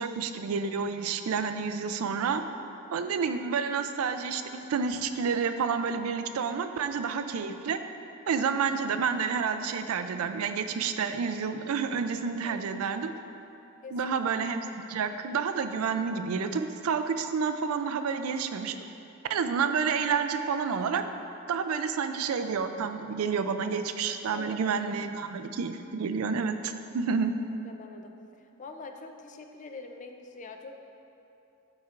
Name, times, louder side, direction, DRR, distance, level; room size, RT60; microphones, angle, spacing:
voice 1, 0.0-2.4 2.9-7.8 8.3-13.1 13.9-18.8 19.3-21.0 21.5-27.3, right 5 dB, 85° right, 9 dB, 0.4 m, -29 dB
voice 2, 3.0-3.4 12.4-13.1 13.8-14.2 24.3-24.9 27.6-28.1 28.4-30.8, left 3 dB, 35° left, 5 dB, 0.4 m, -45 dB
12.0 x 4.2 x 2.5 m, 2.8 s
head